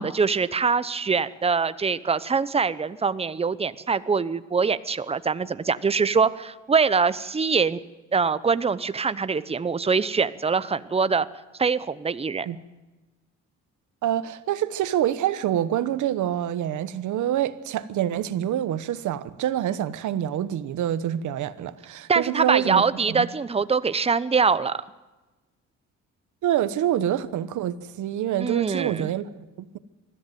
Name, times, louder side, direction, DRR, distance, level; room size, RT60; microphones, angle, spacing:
voice 1, 0.0-7.8 8.1-11.3 11.6-12.5 22.1-24.7 28.4-29.1, right 5 dB, 20° right, 0.7 m, -23 dB
voice 2, 14.0-22.8 23.1-23.3 26.4-29.8, right 11 dB, 75° right, 1.0 m, -26 dB
20.5 x 13.5 x 9.2 m
cardioid pair, 90°, 30 cm